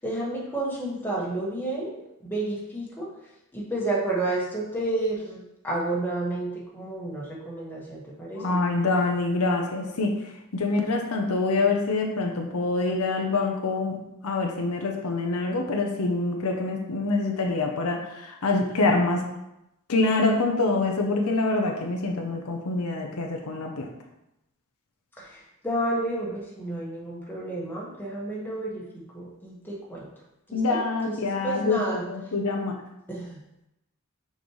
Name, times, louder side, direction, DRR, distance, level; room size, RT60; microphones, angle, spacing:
voice 1, 0.0-1.9 2.2-3.1 3.5-8.4 25.2-30.1 30.5-31.1 31.4-32.0 33.1-33.4, right 2 dB, 10° left, -5 dB, 1.6 m, -31 dB
voice 2, 8.3-10.1 10.5-14.0 14.2-19.2 19.9-23.9 30.5-31.8 32.1-32.7, left 3 dB, 75° left, 2 dB, 0.8 m, -25 dB
6.4 x 5.2 x 3.2 m, 0.87 s
head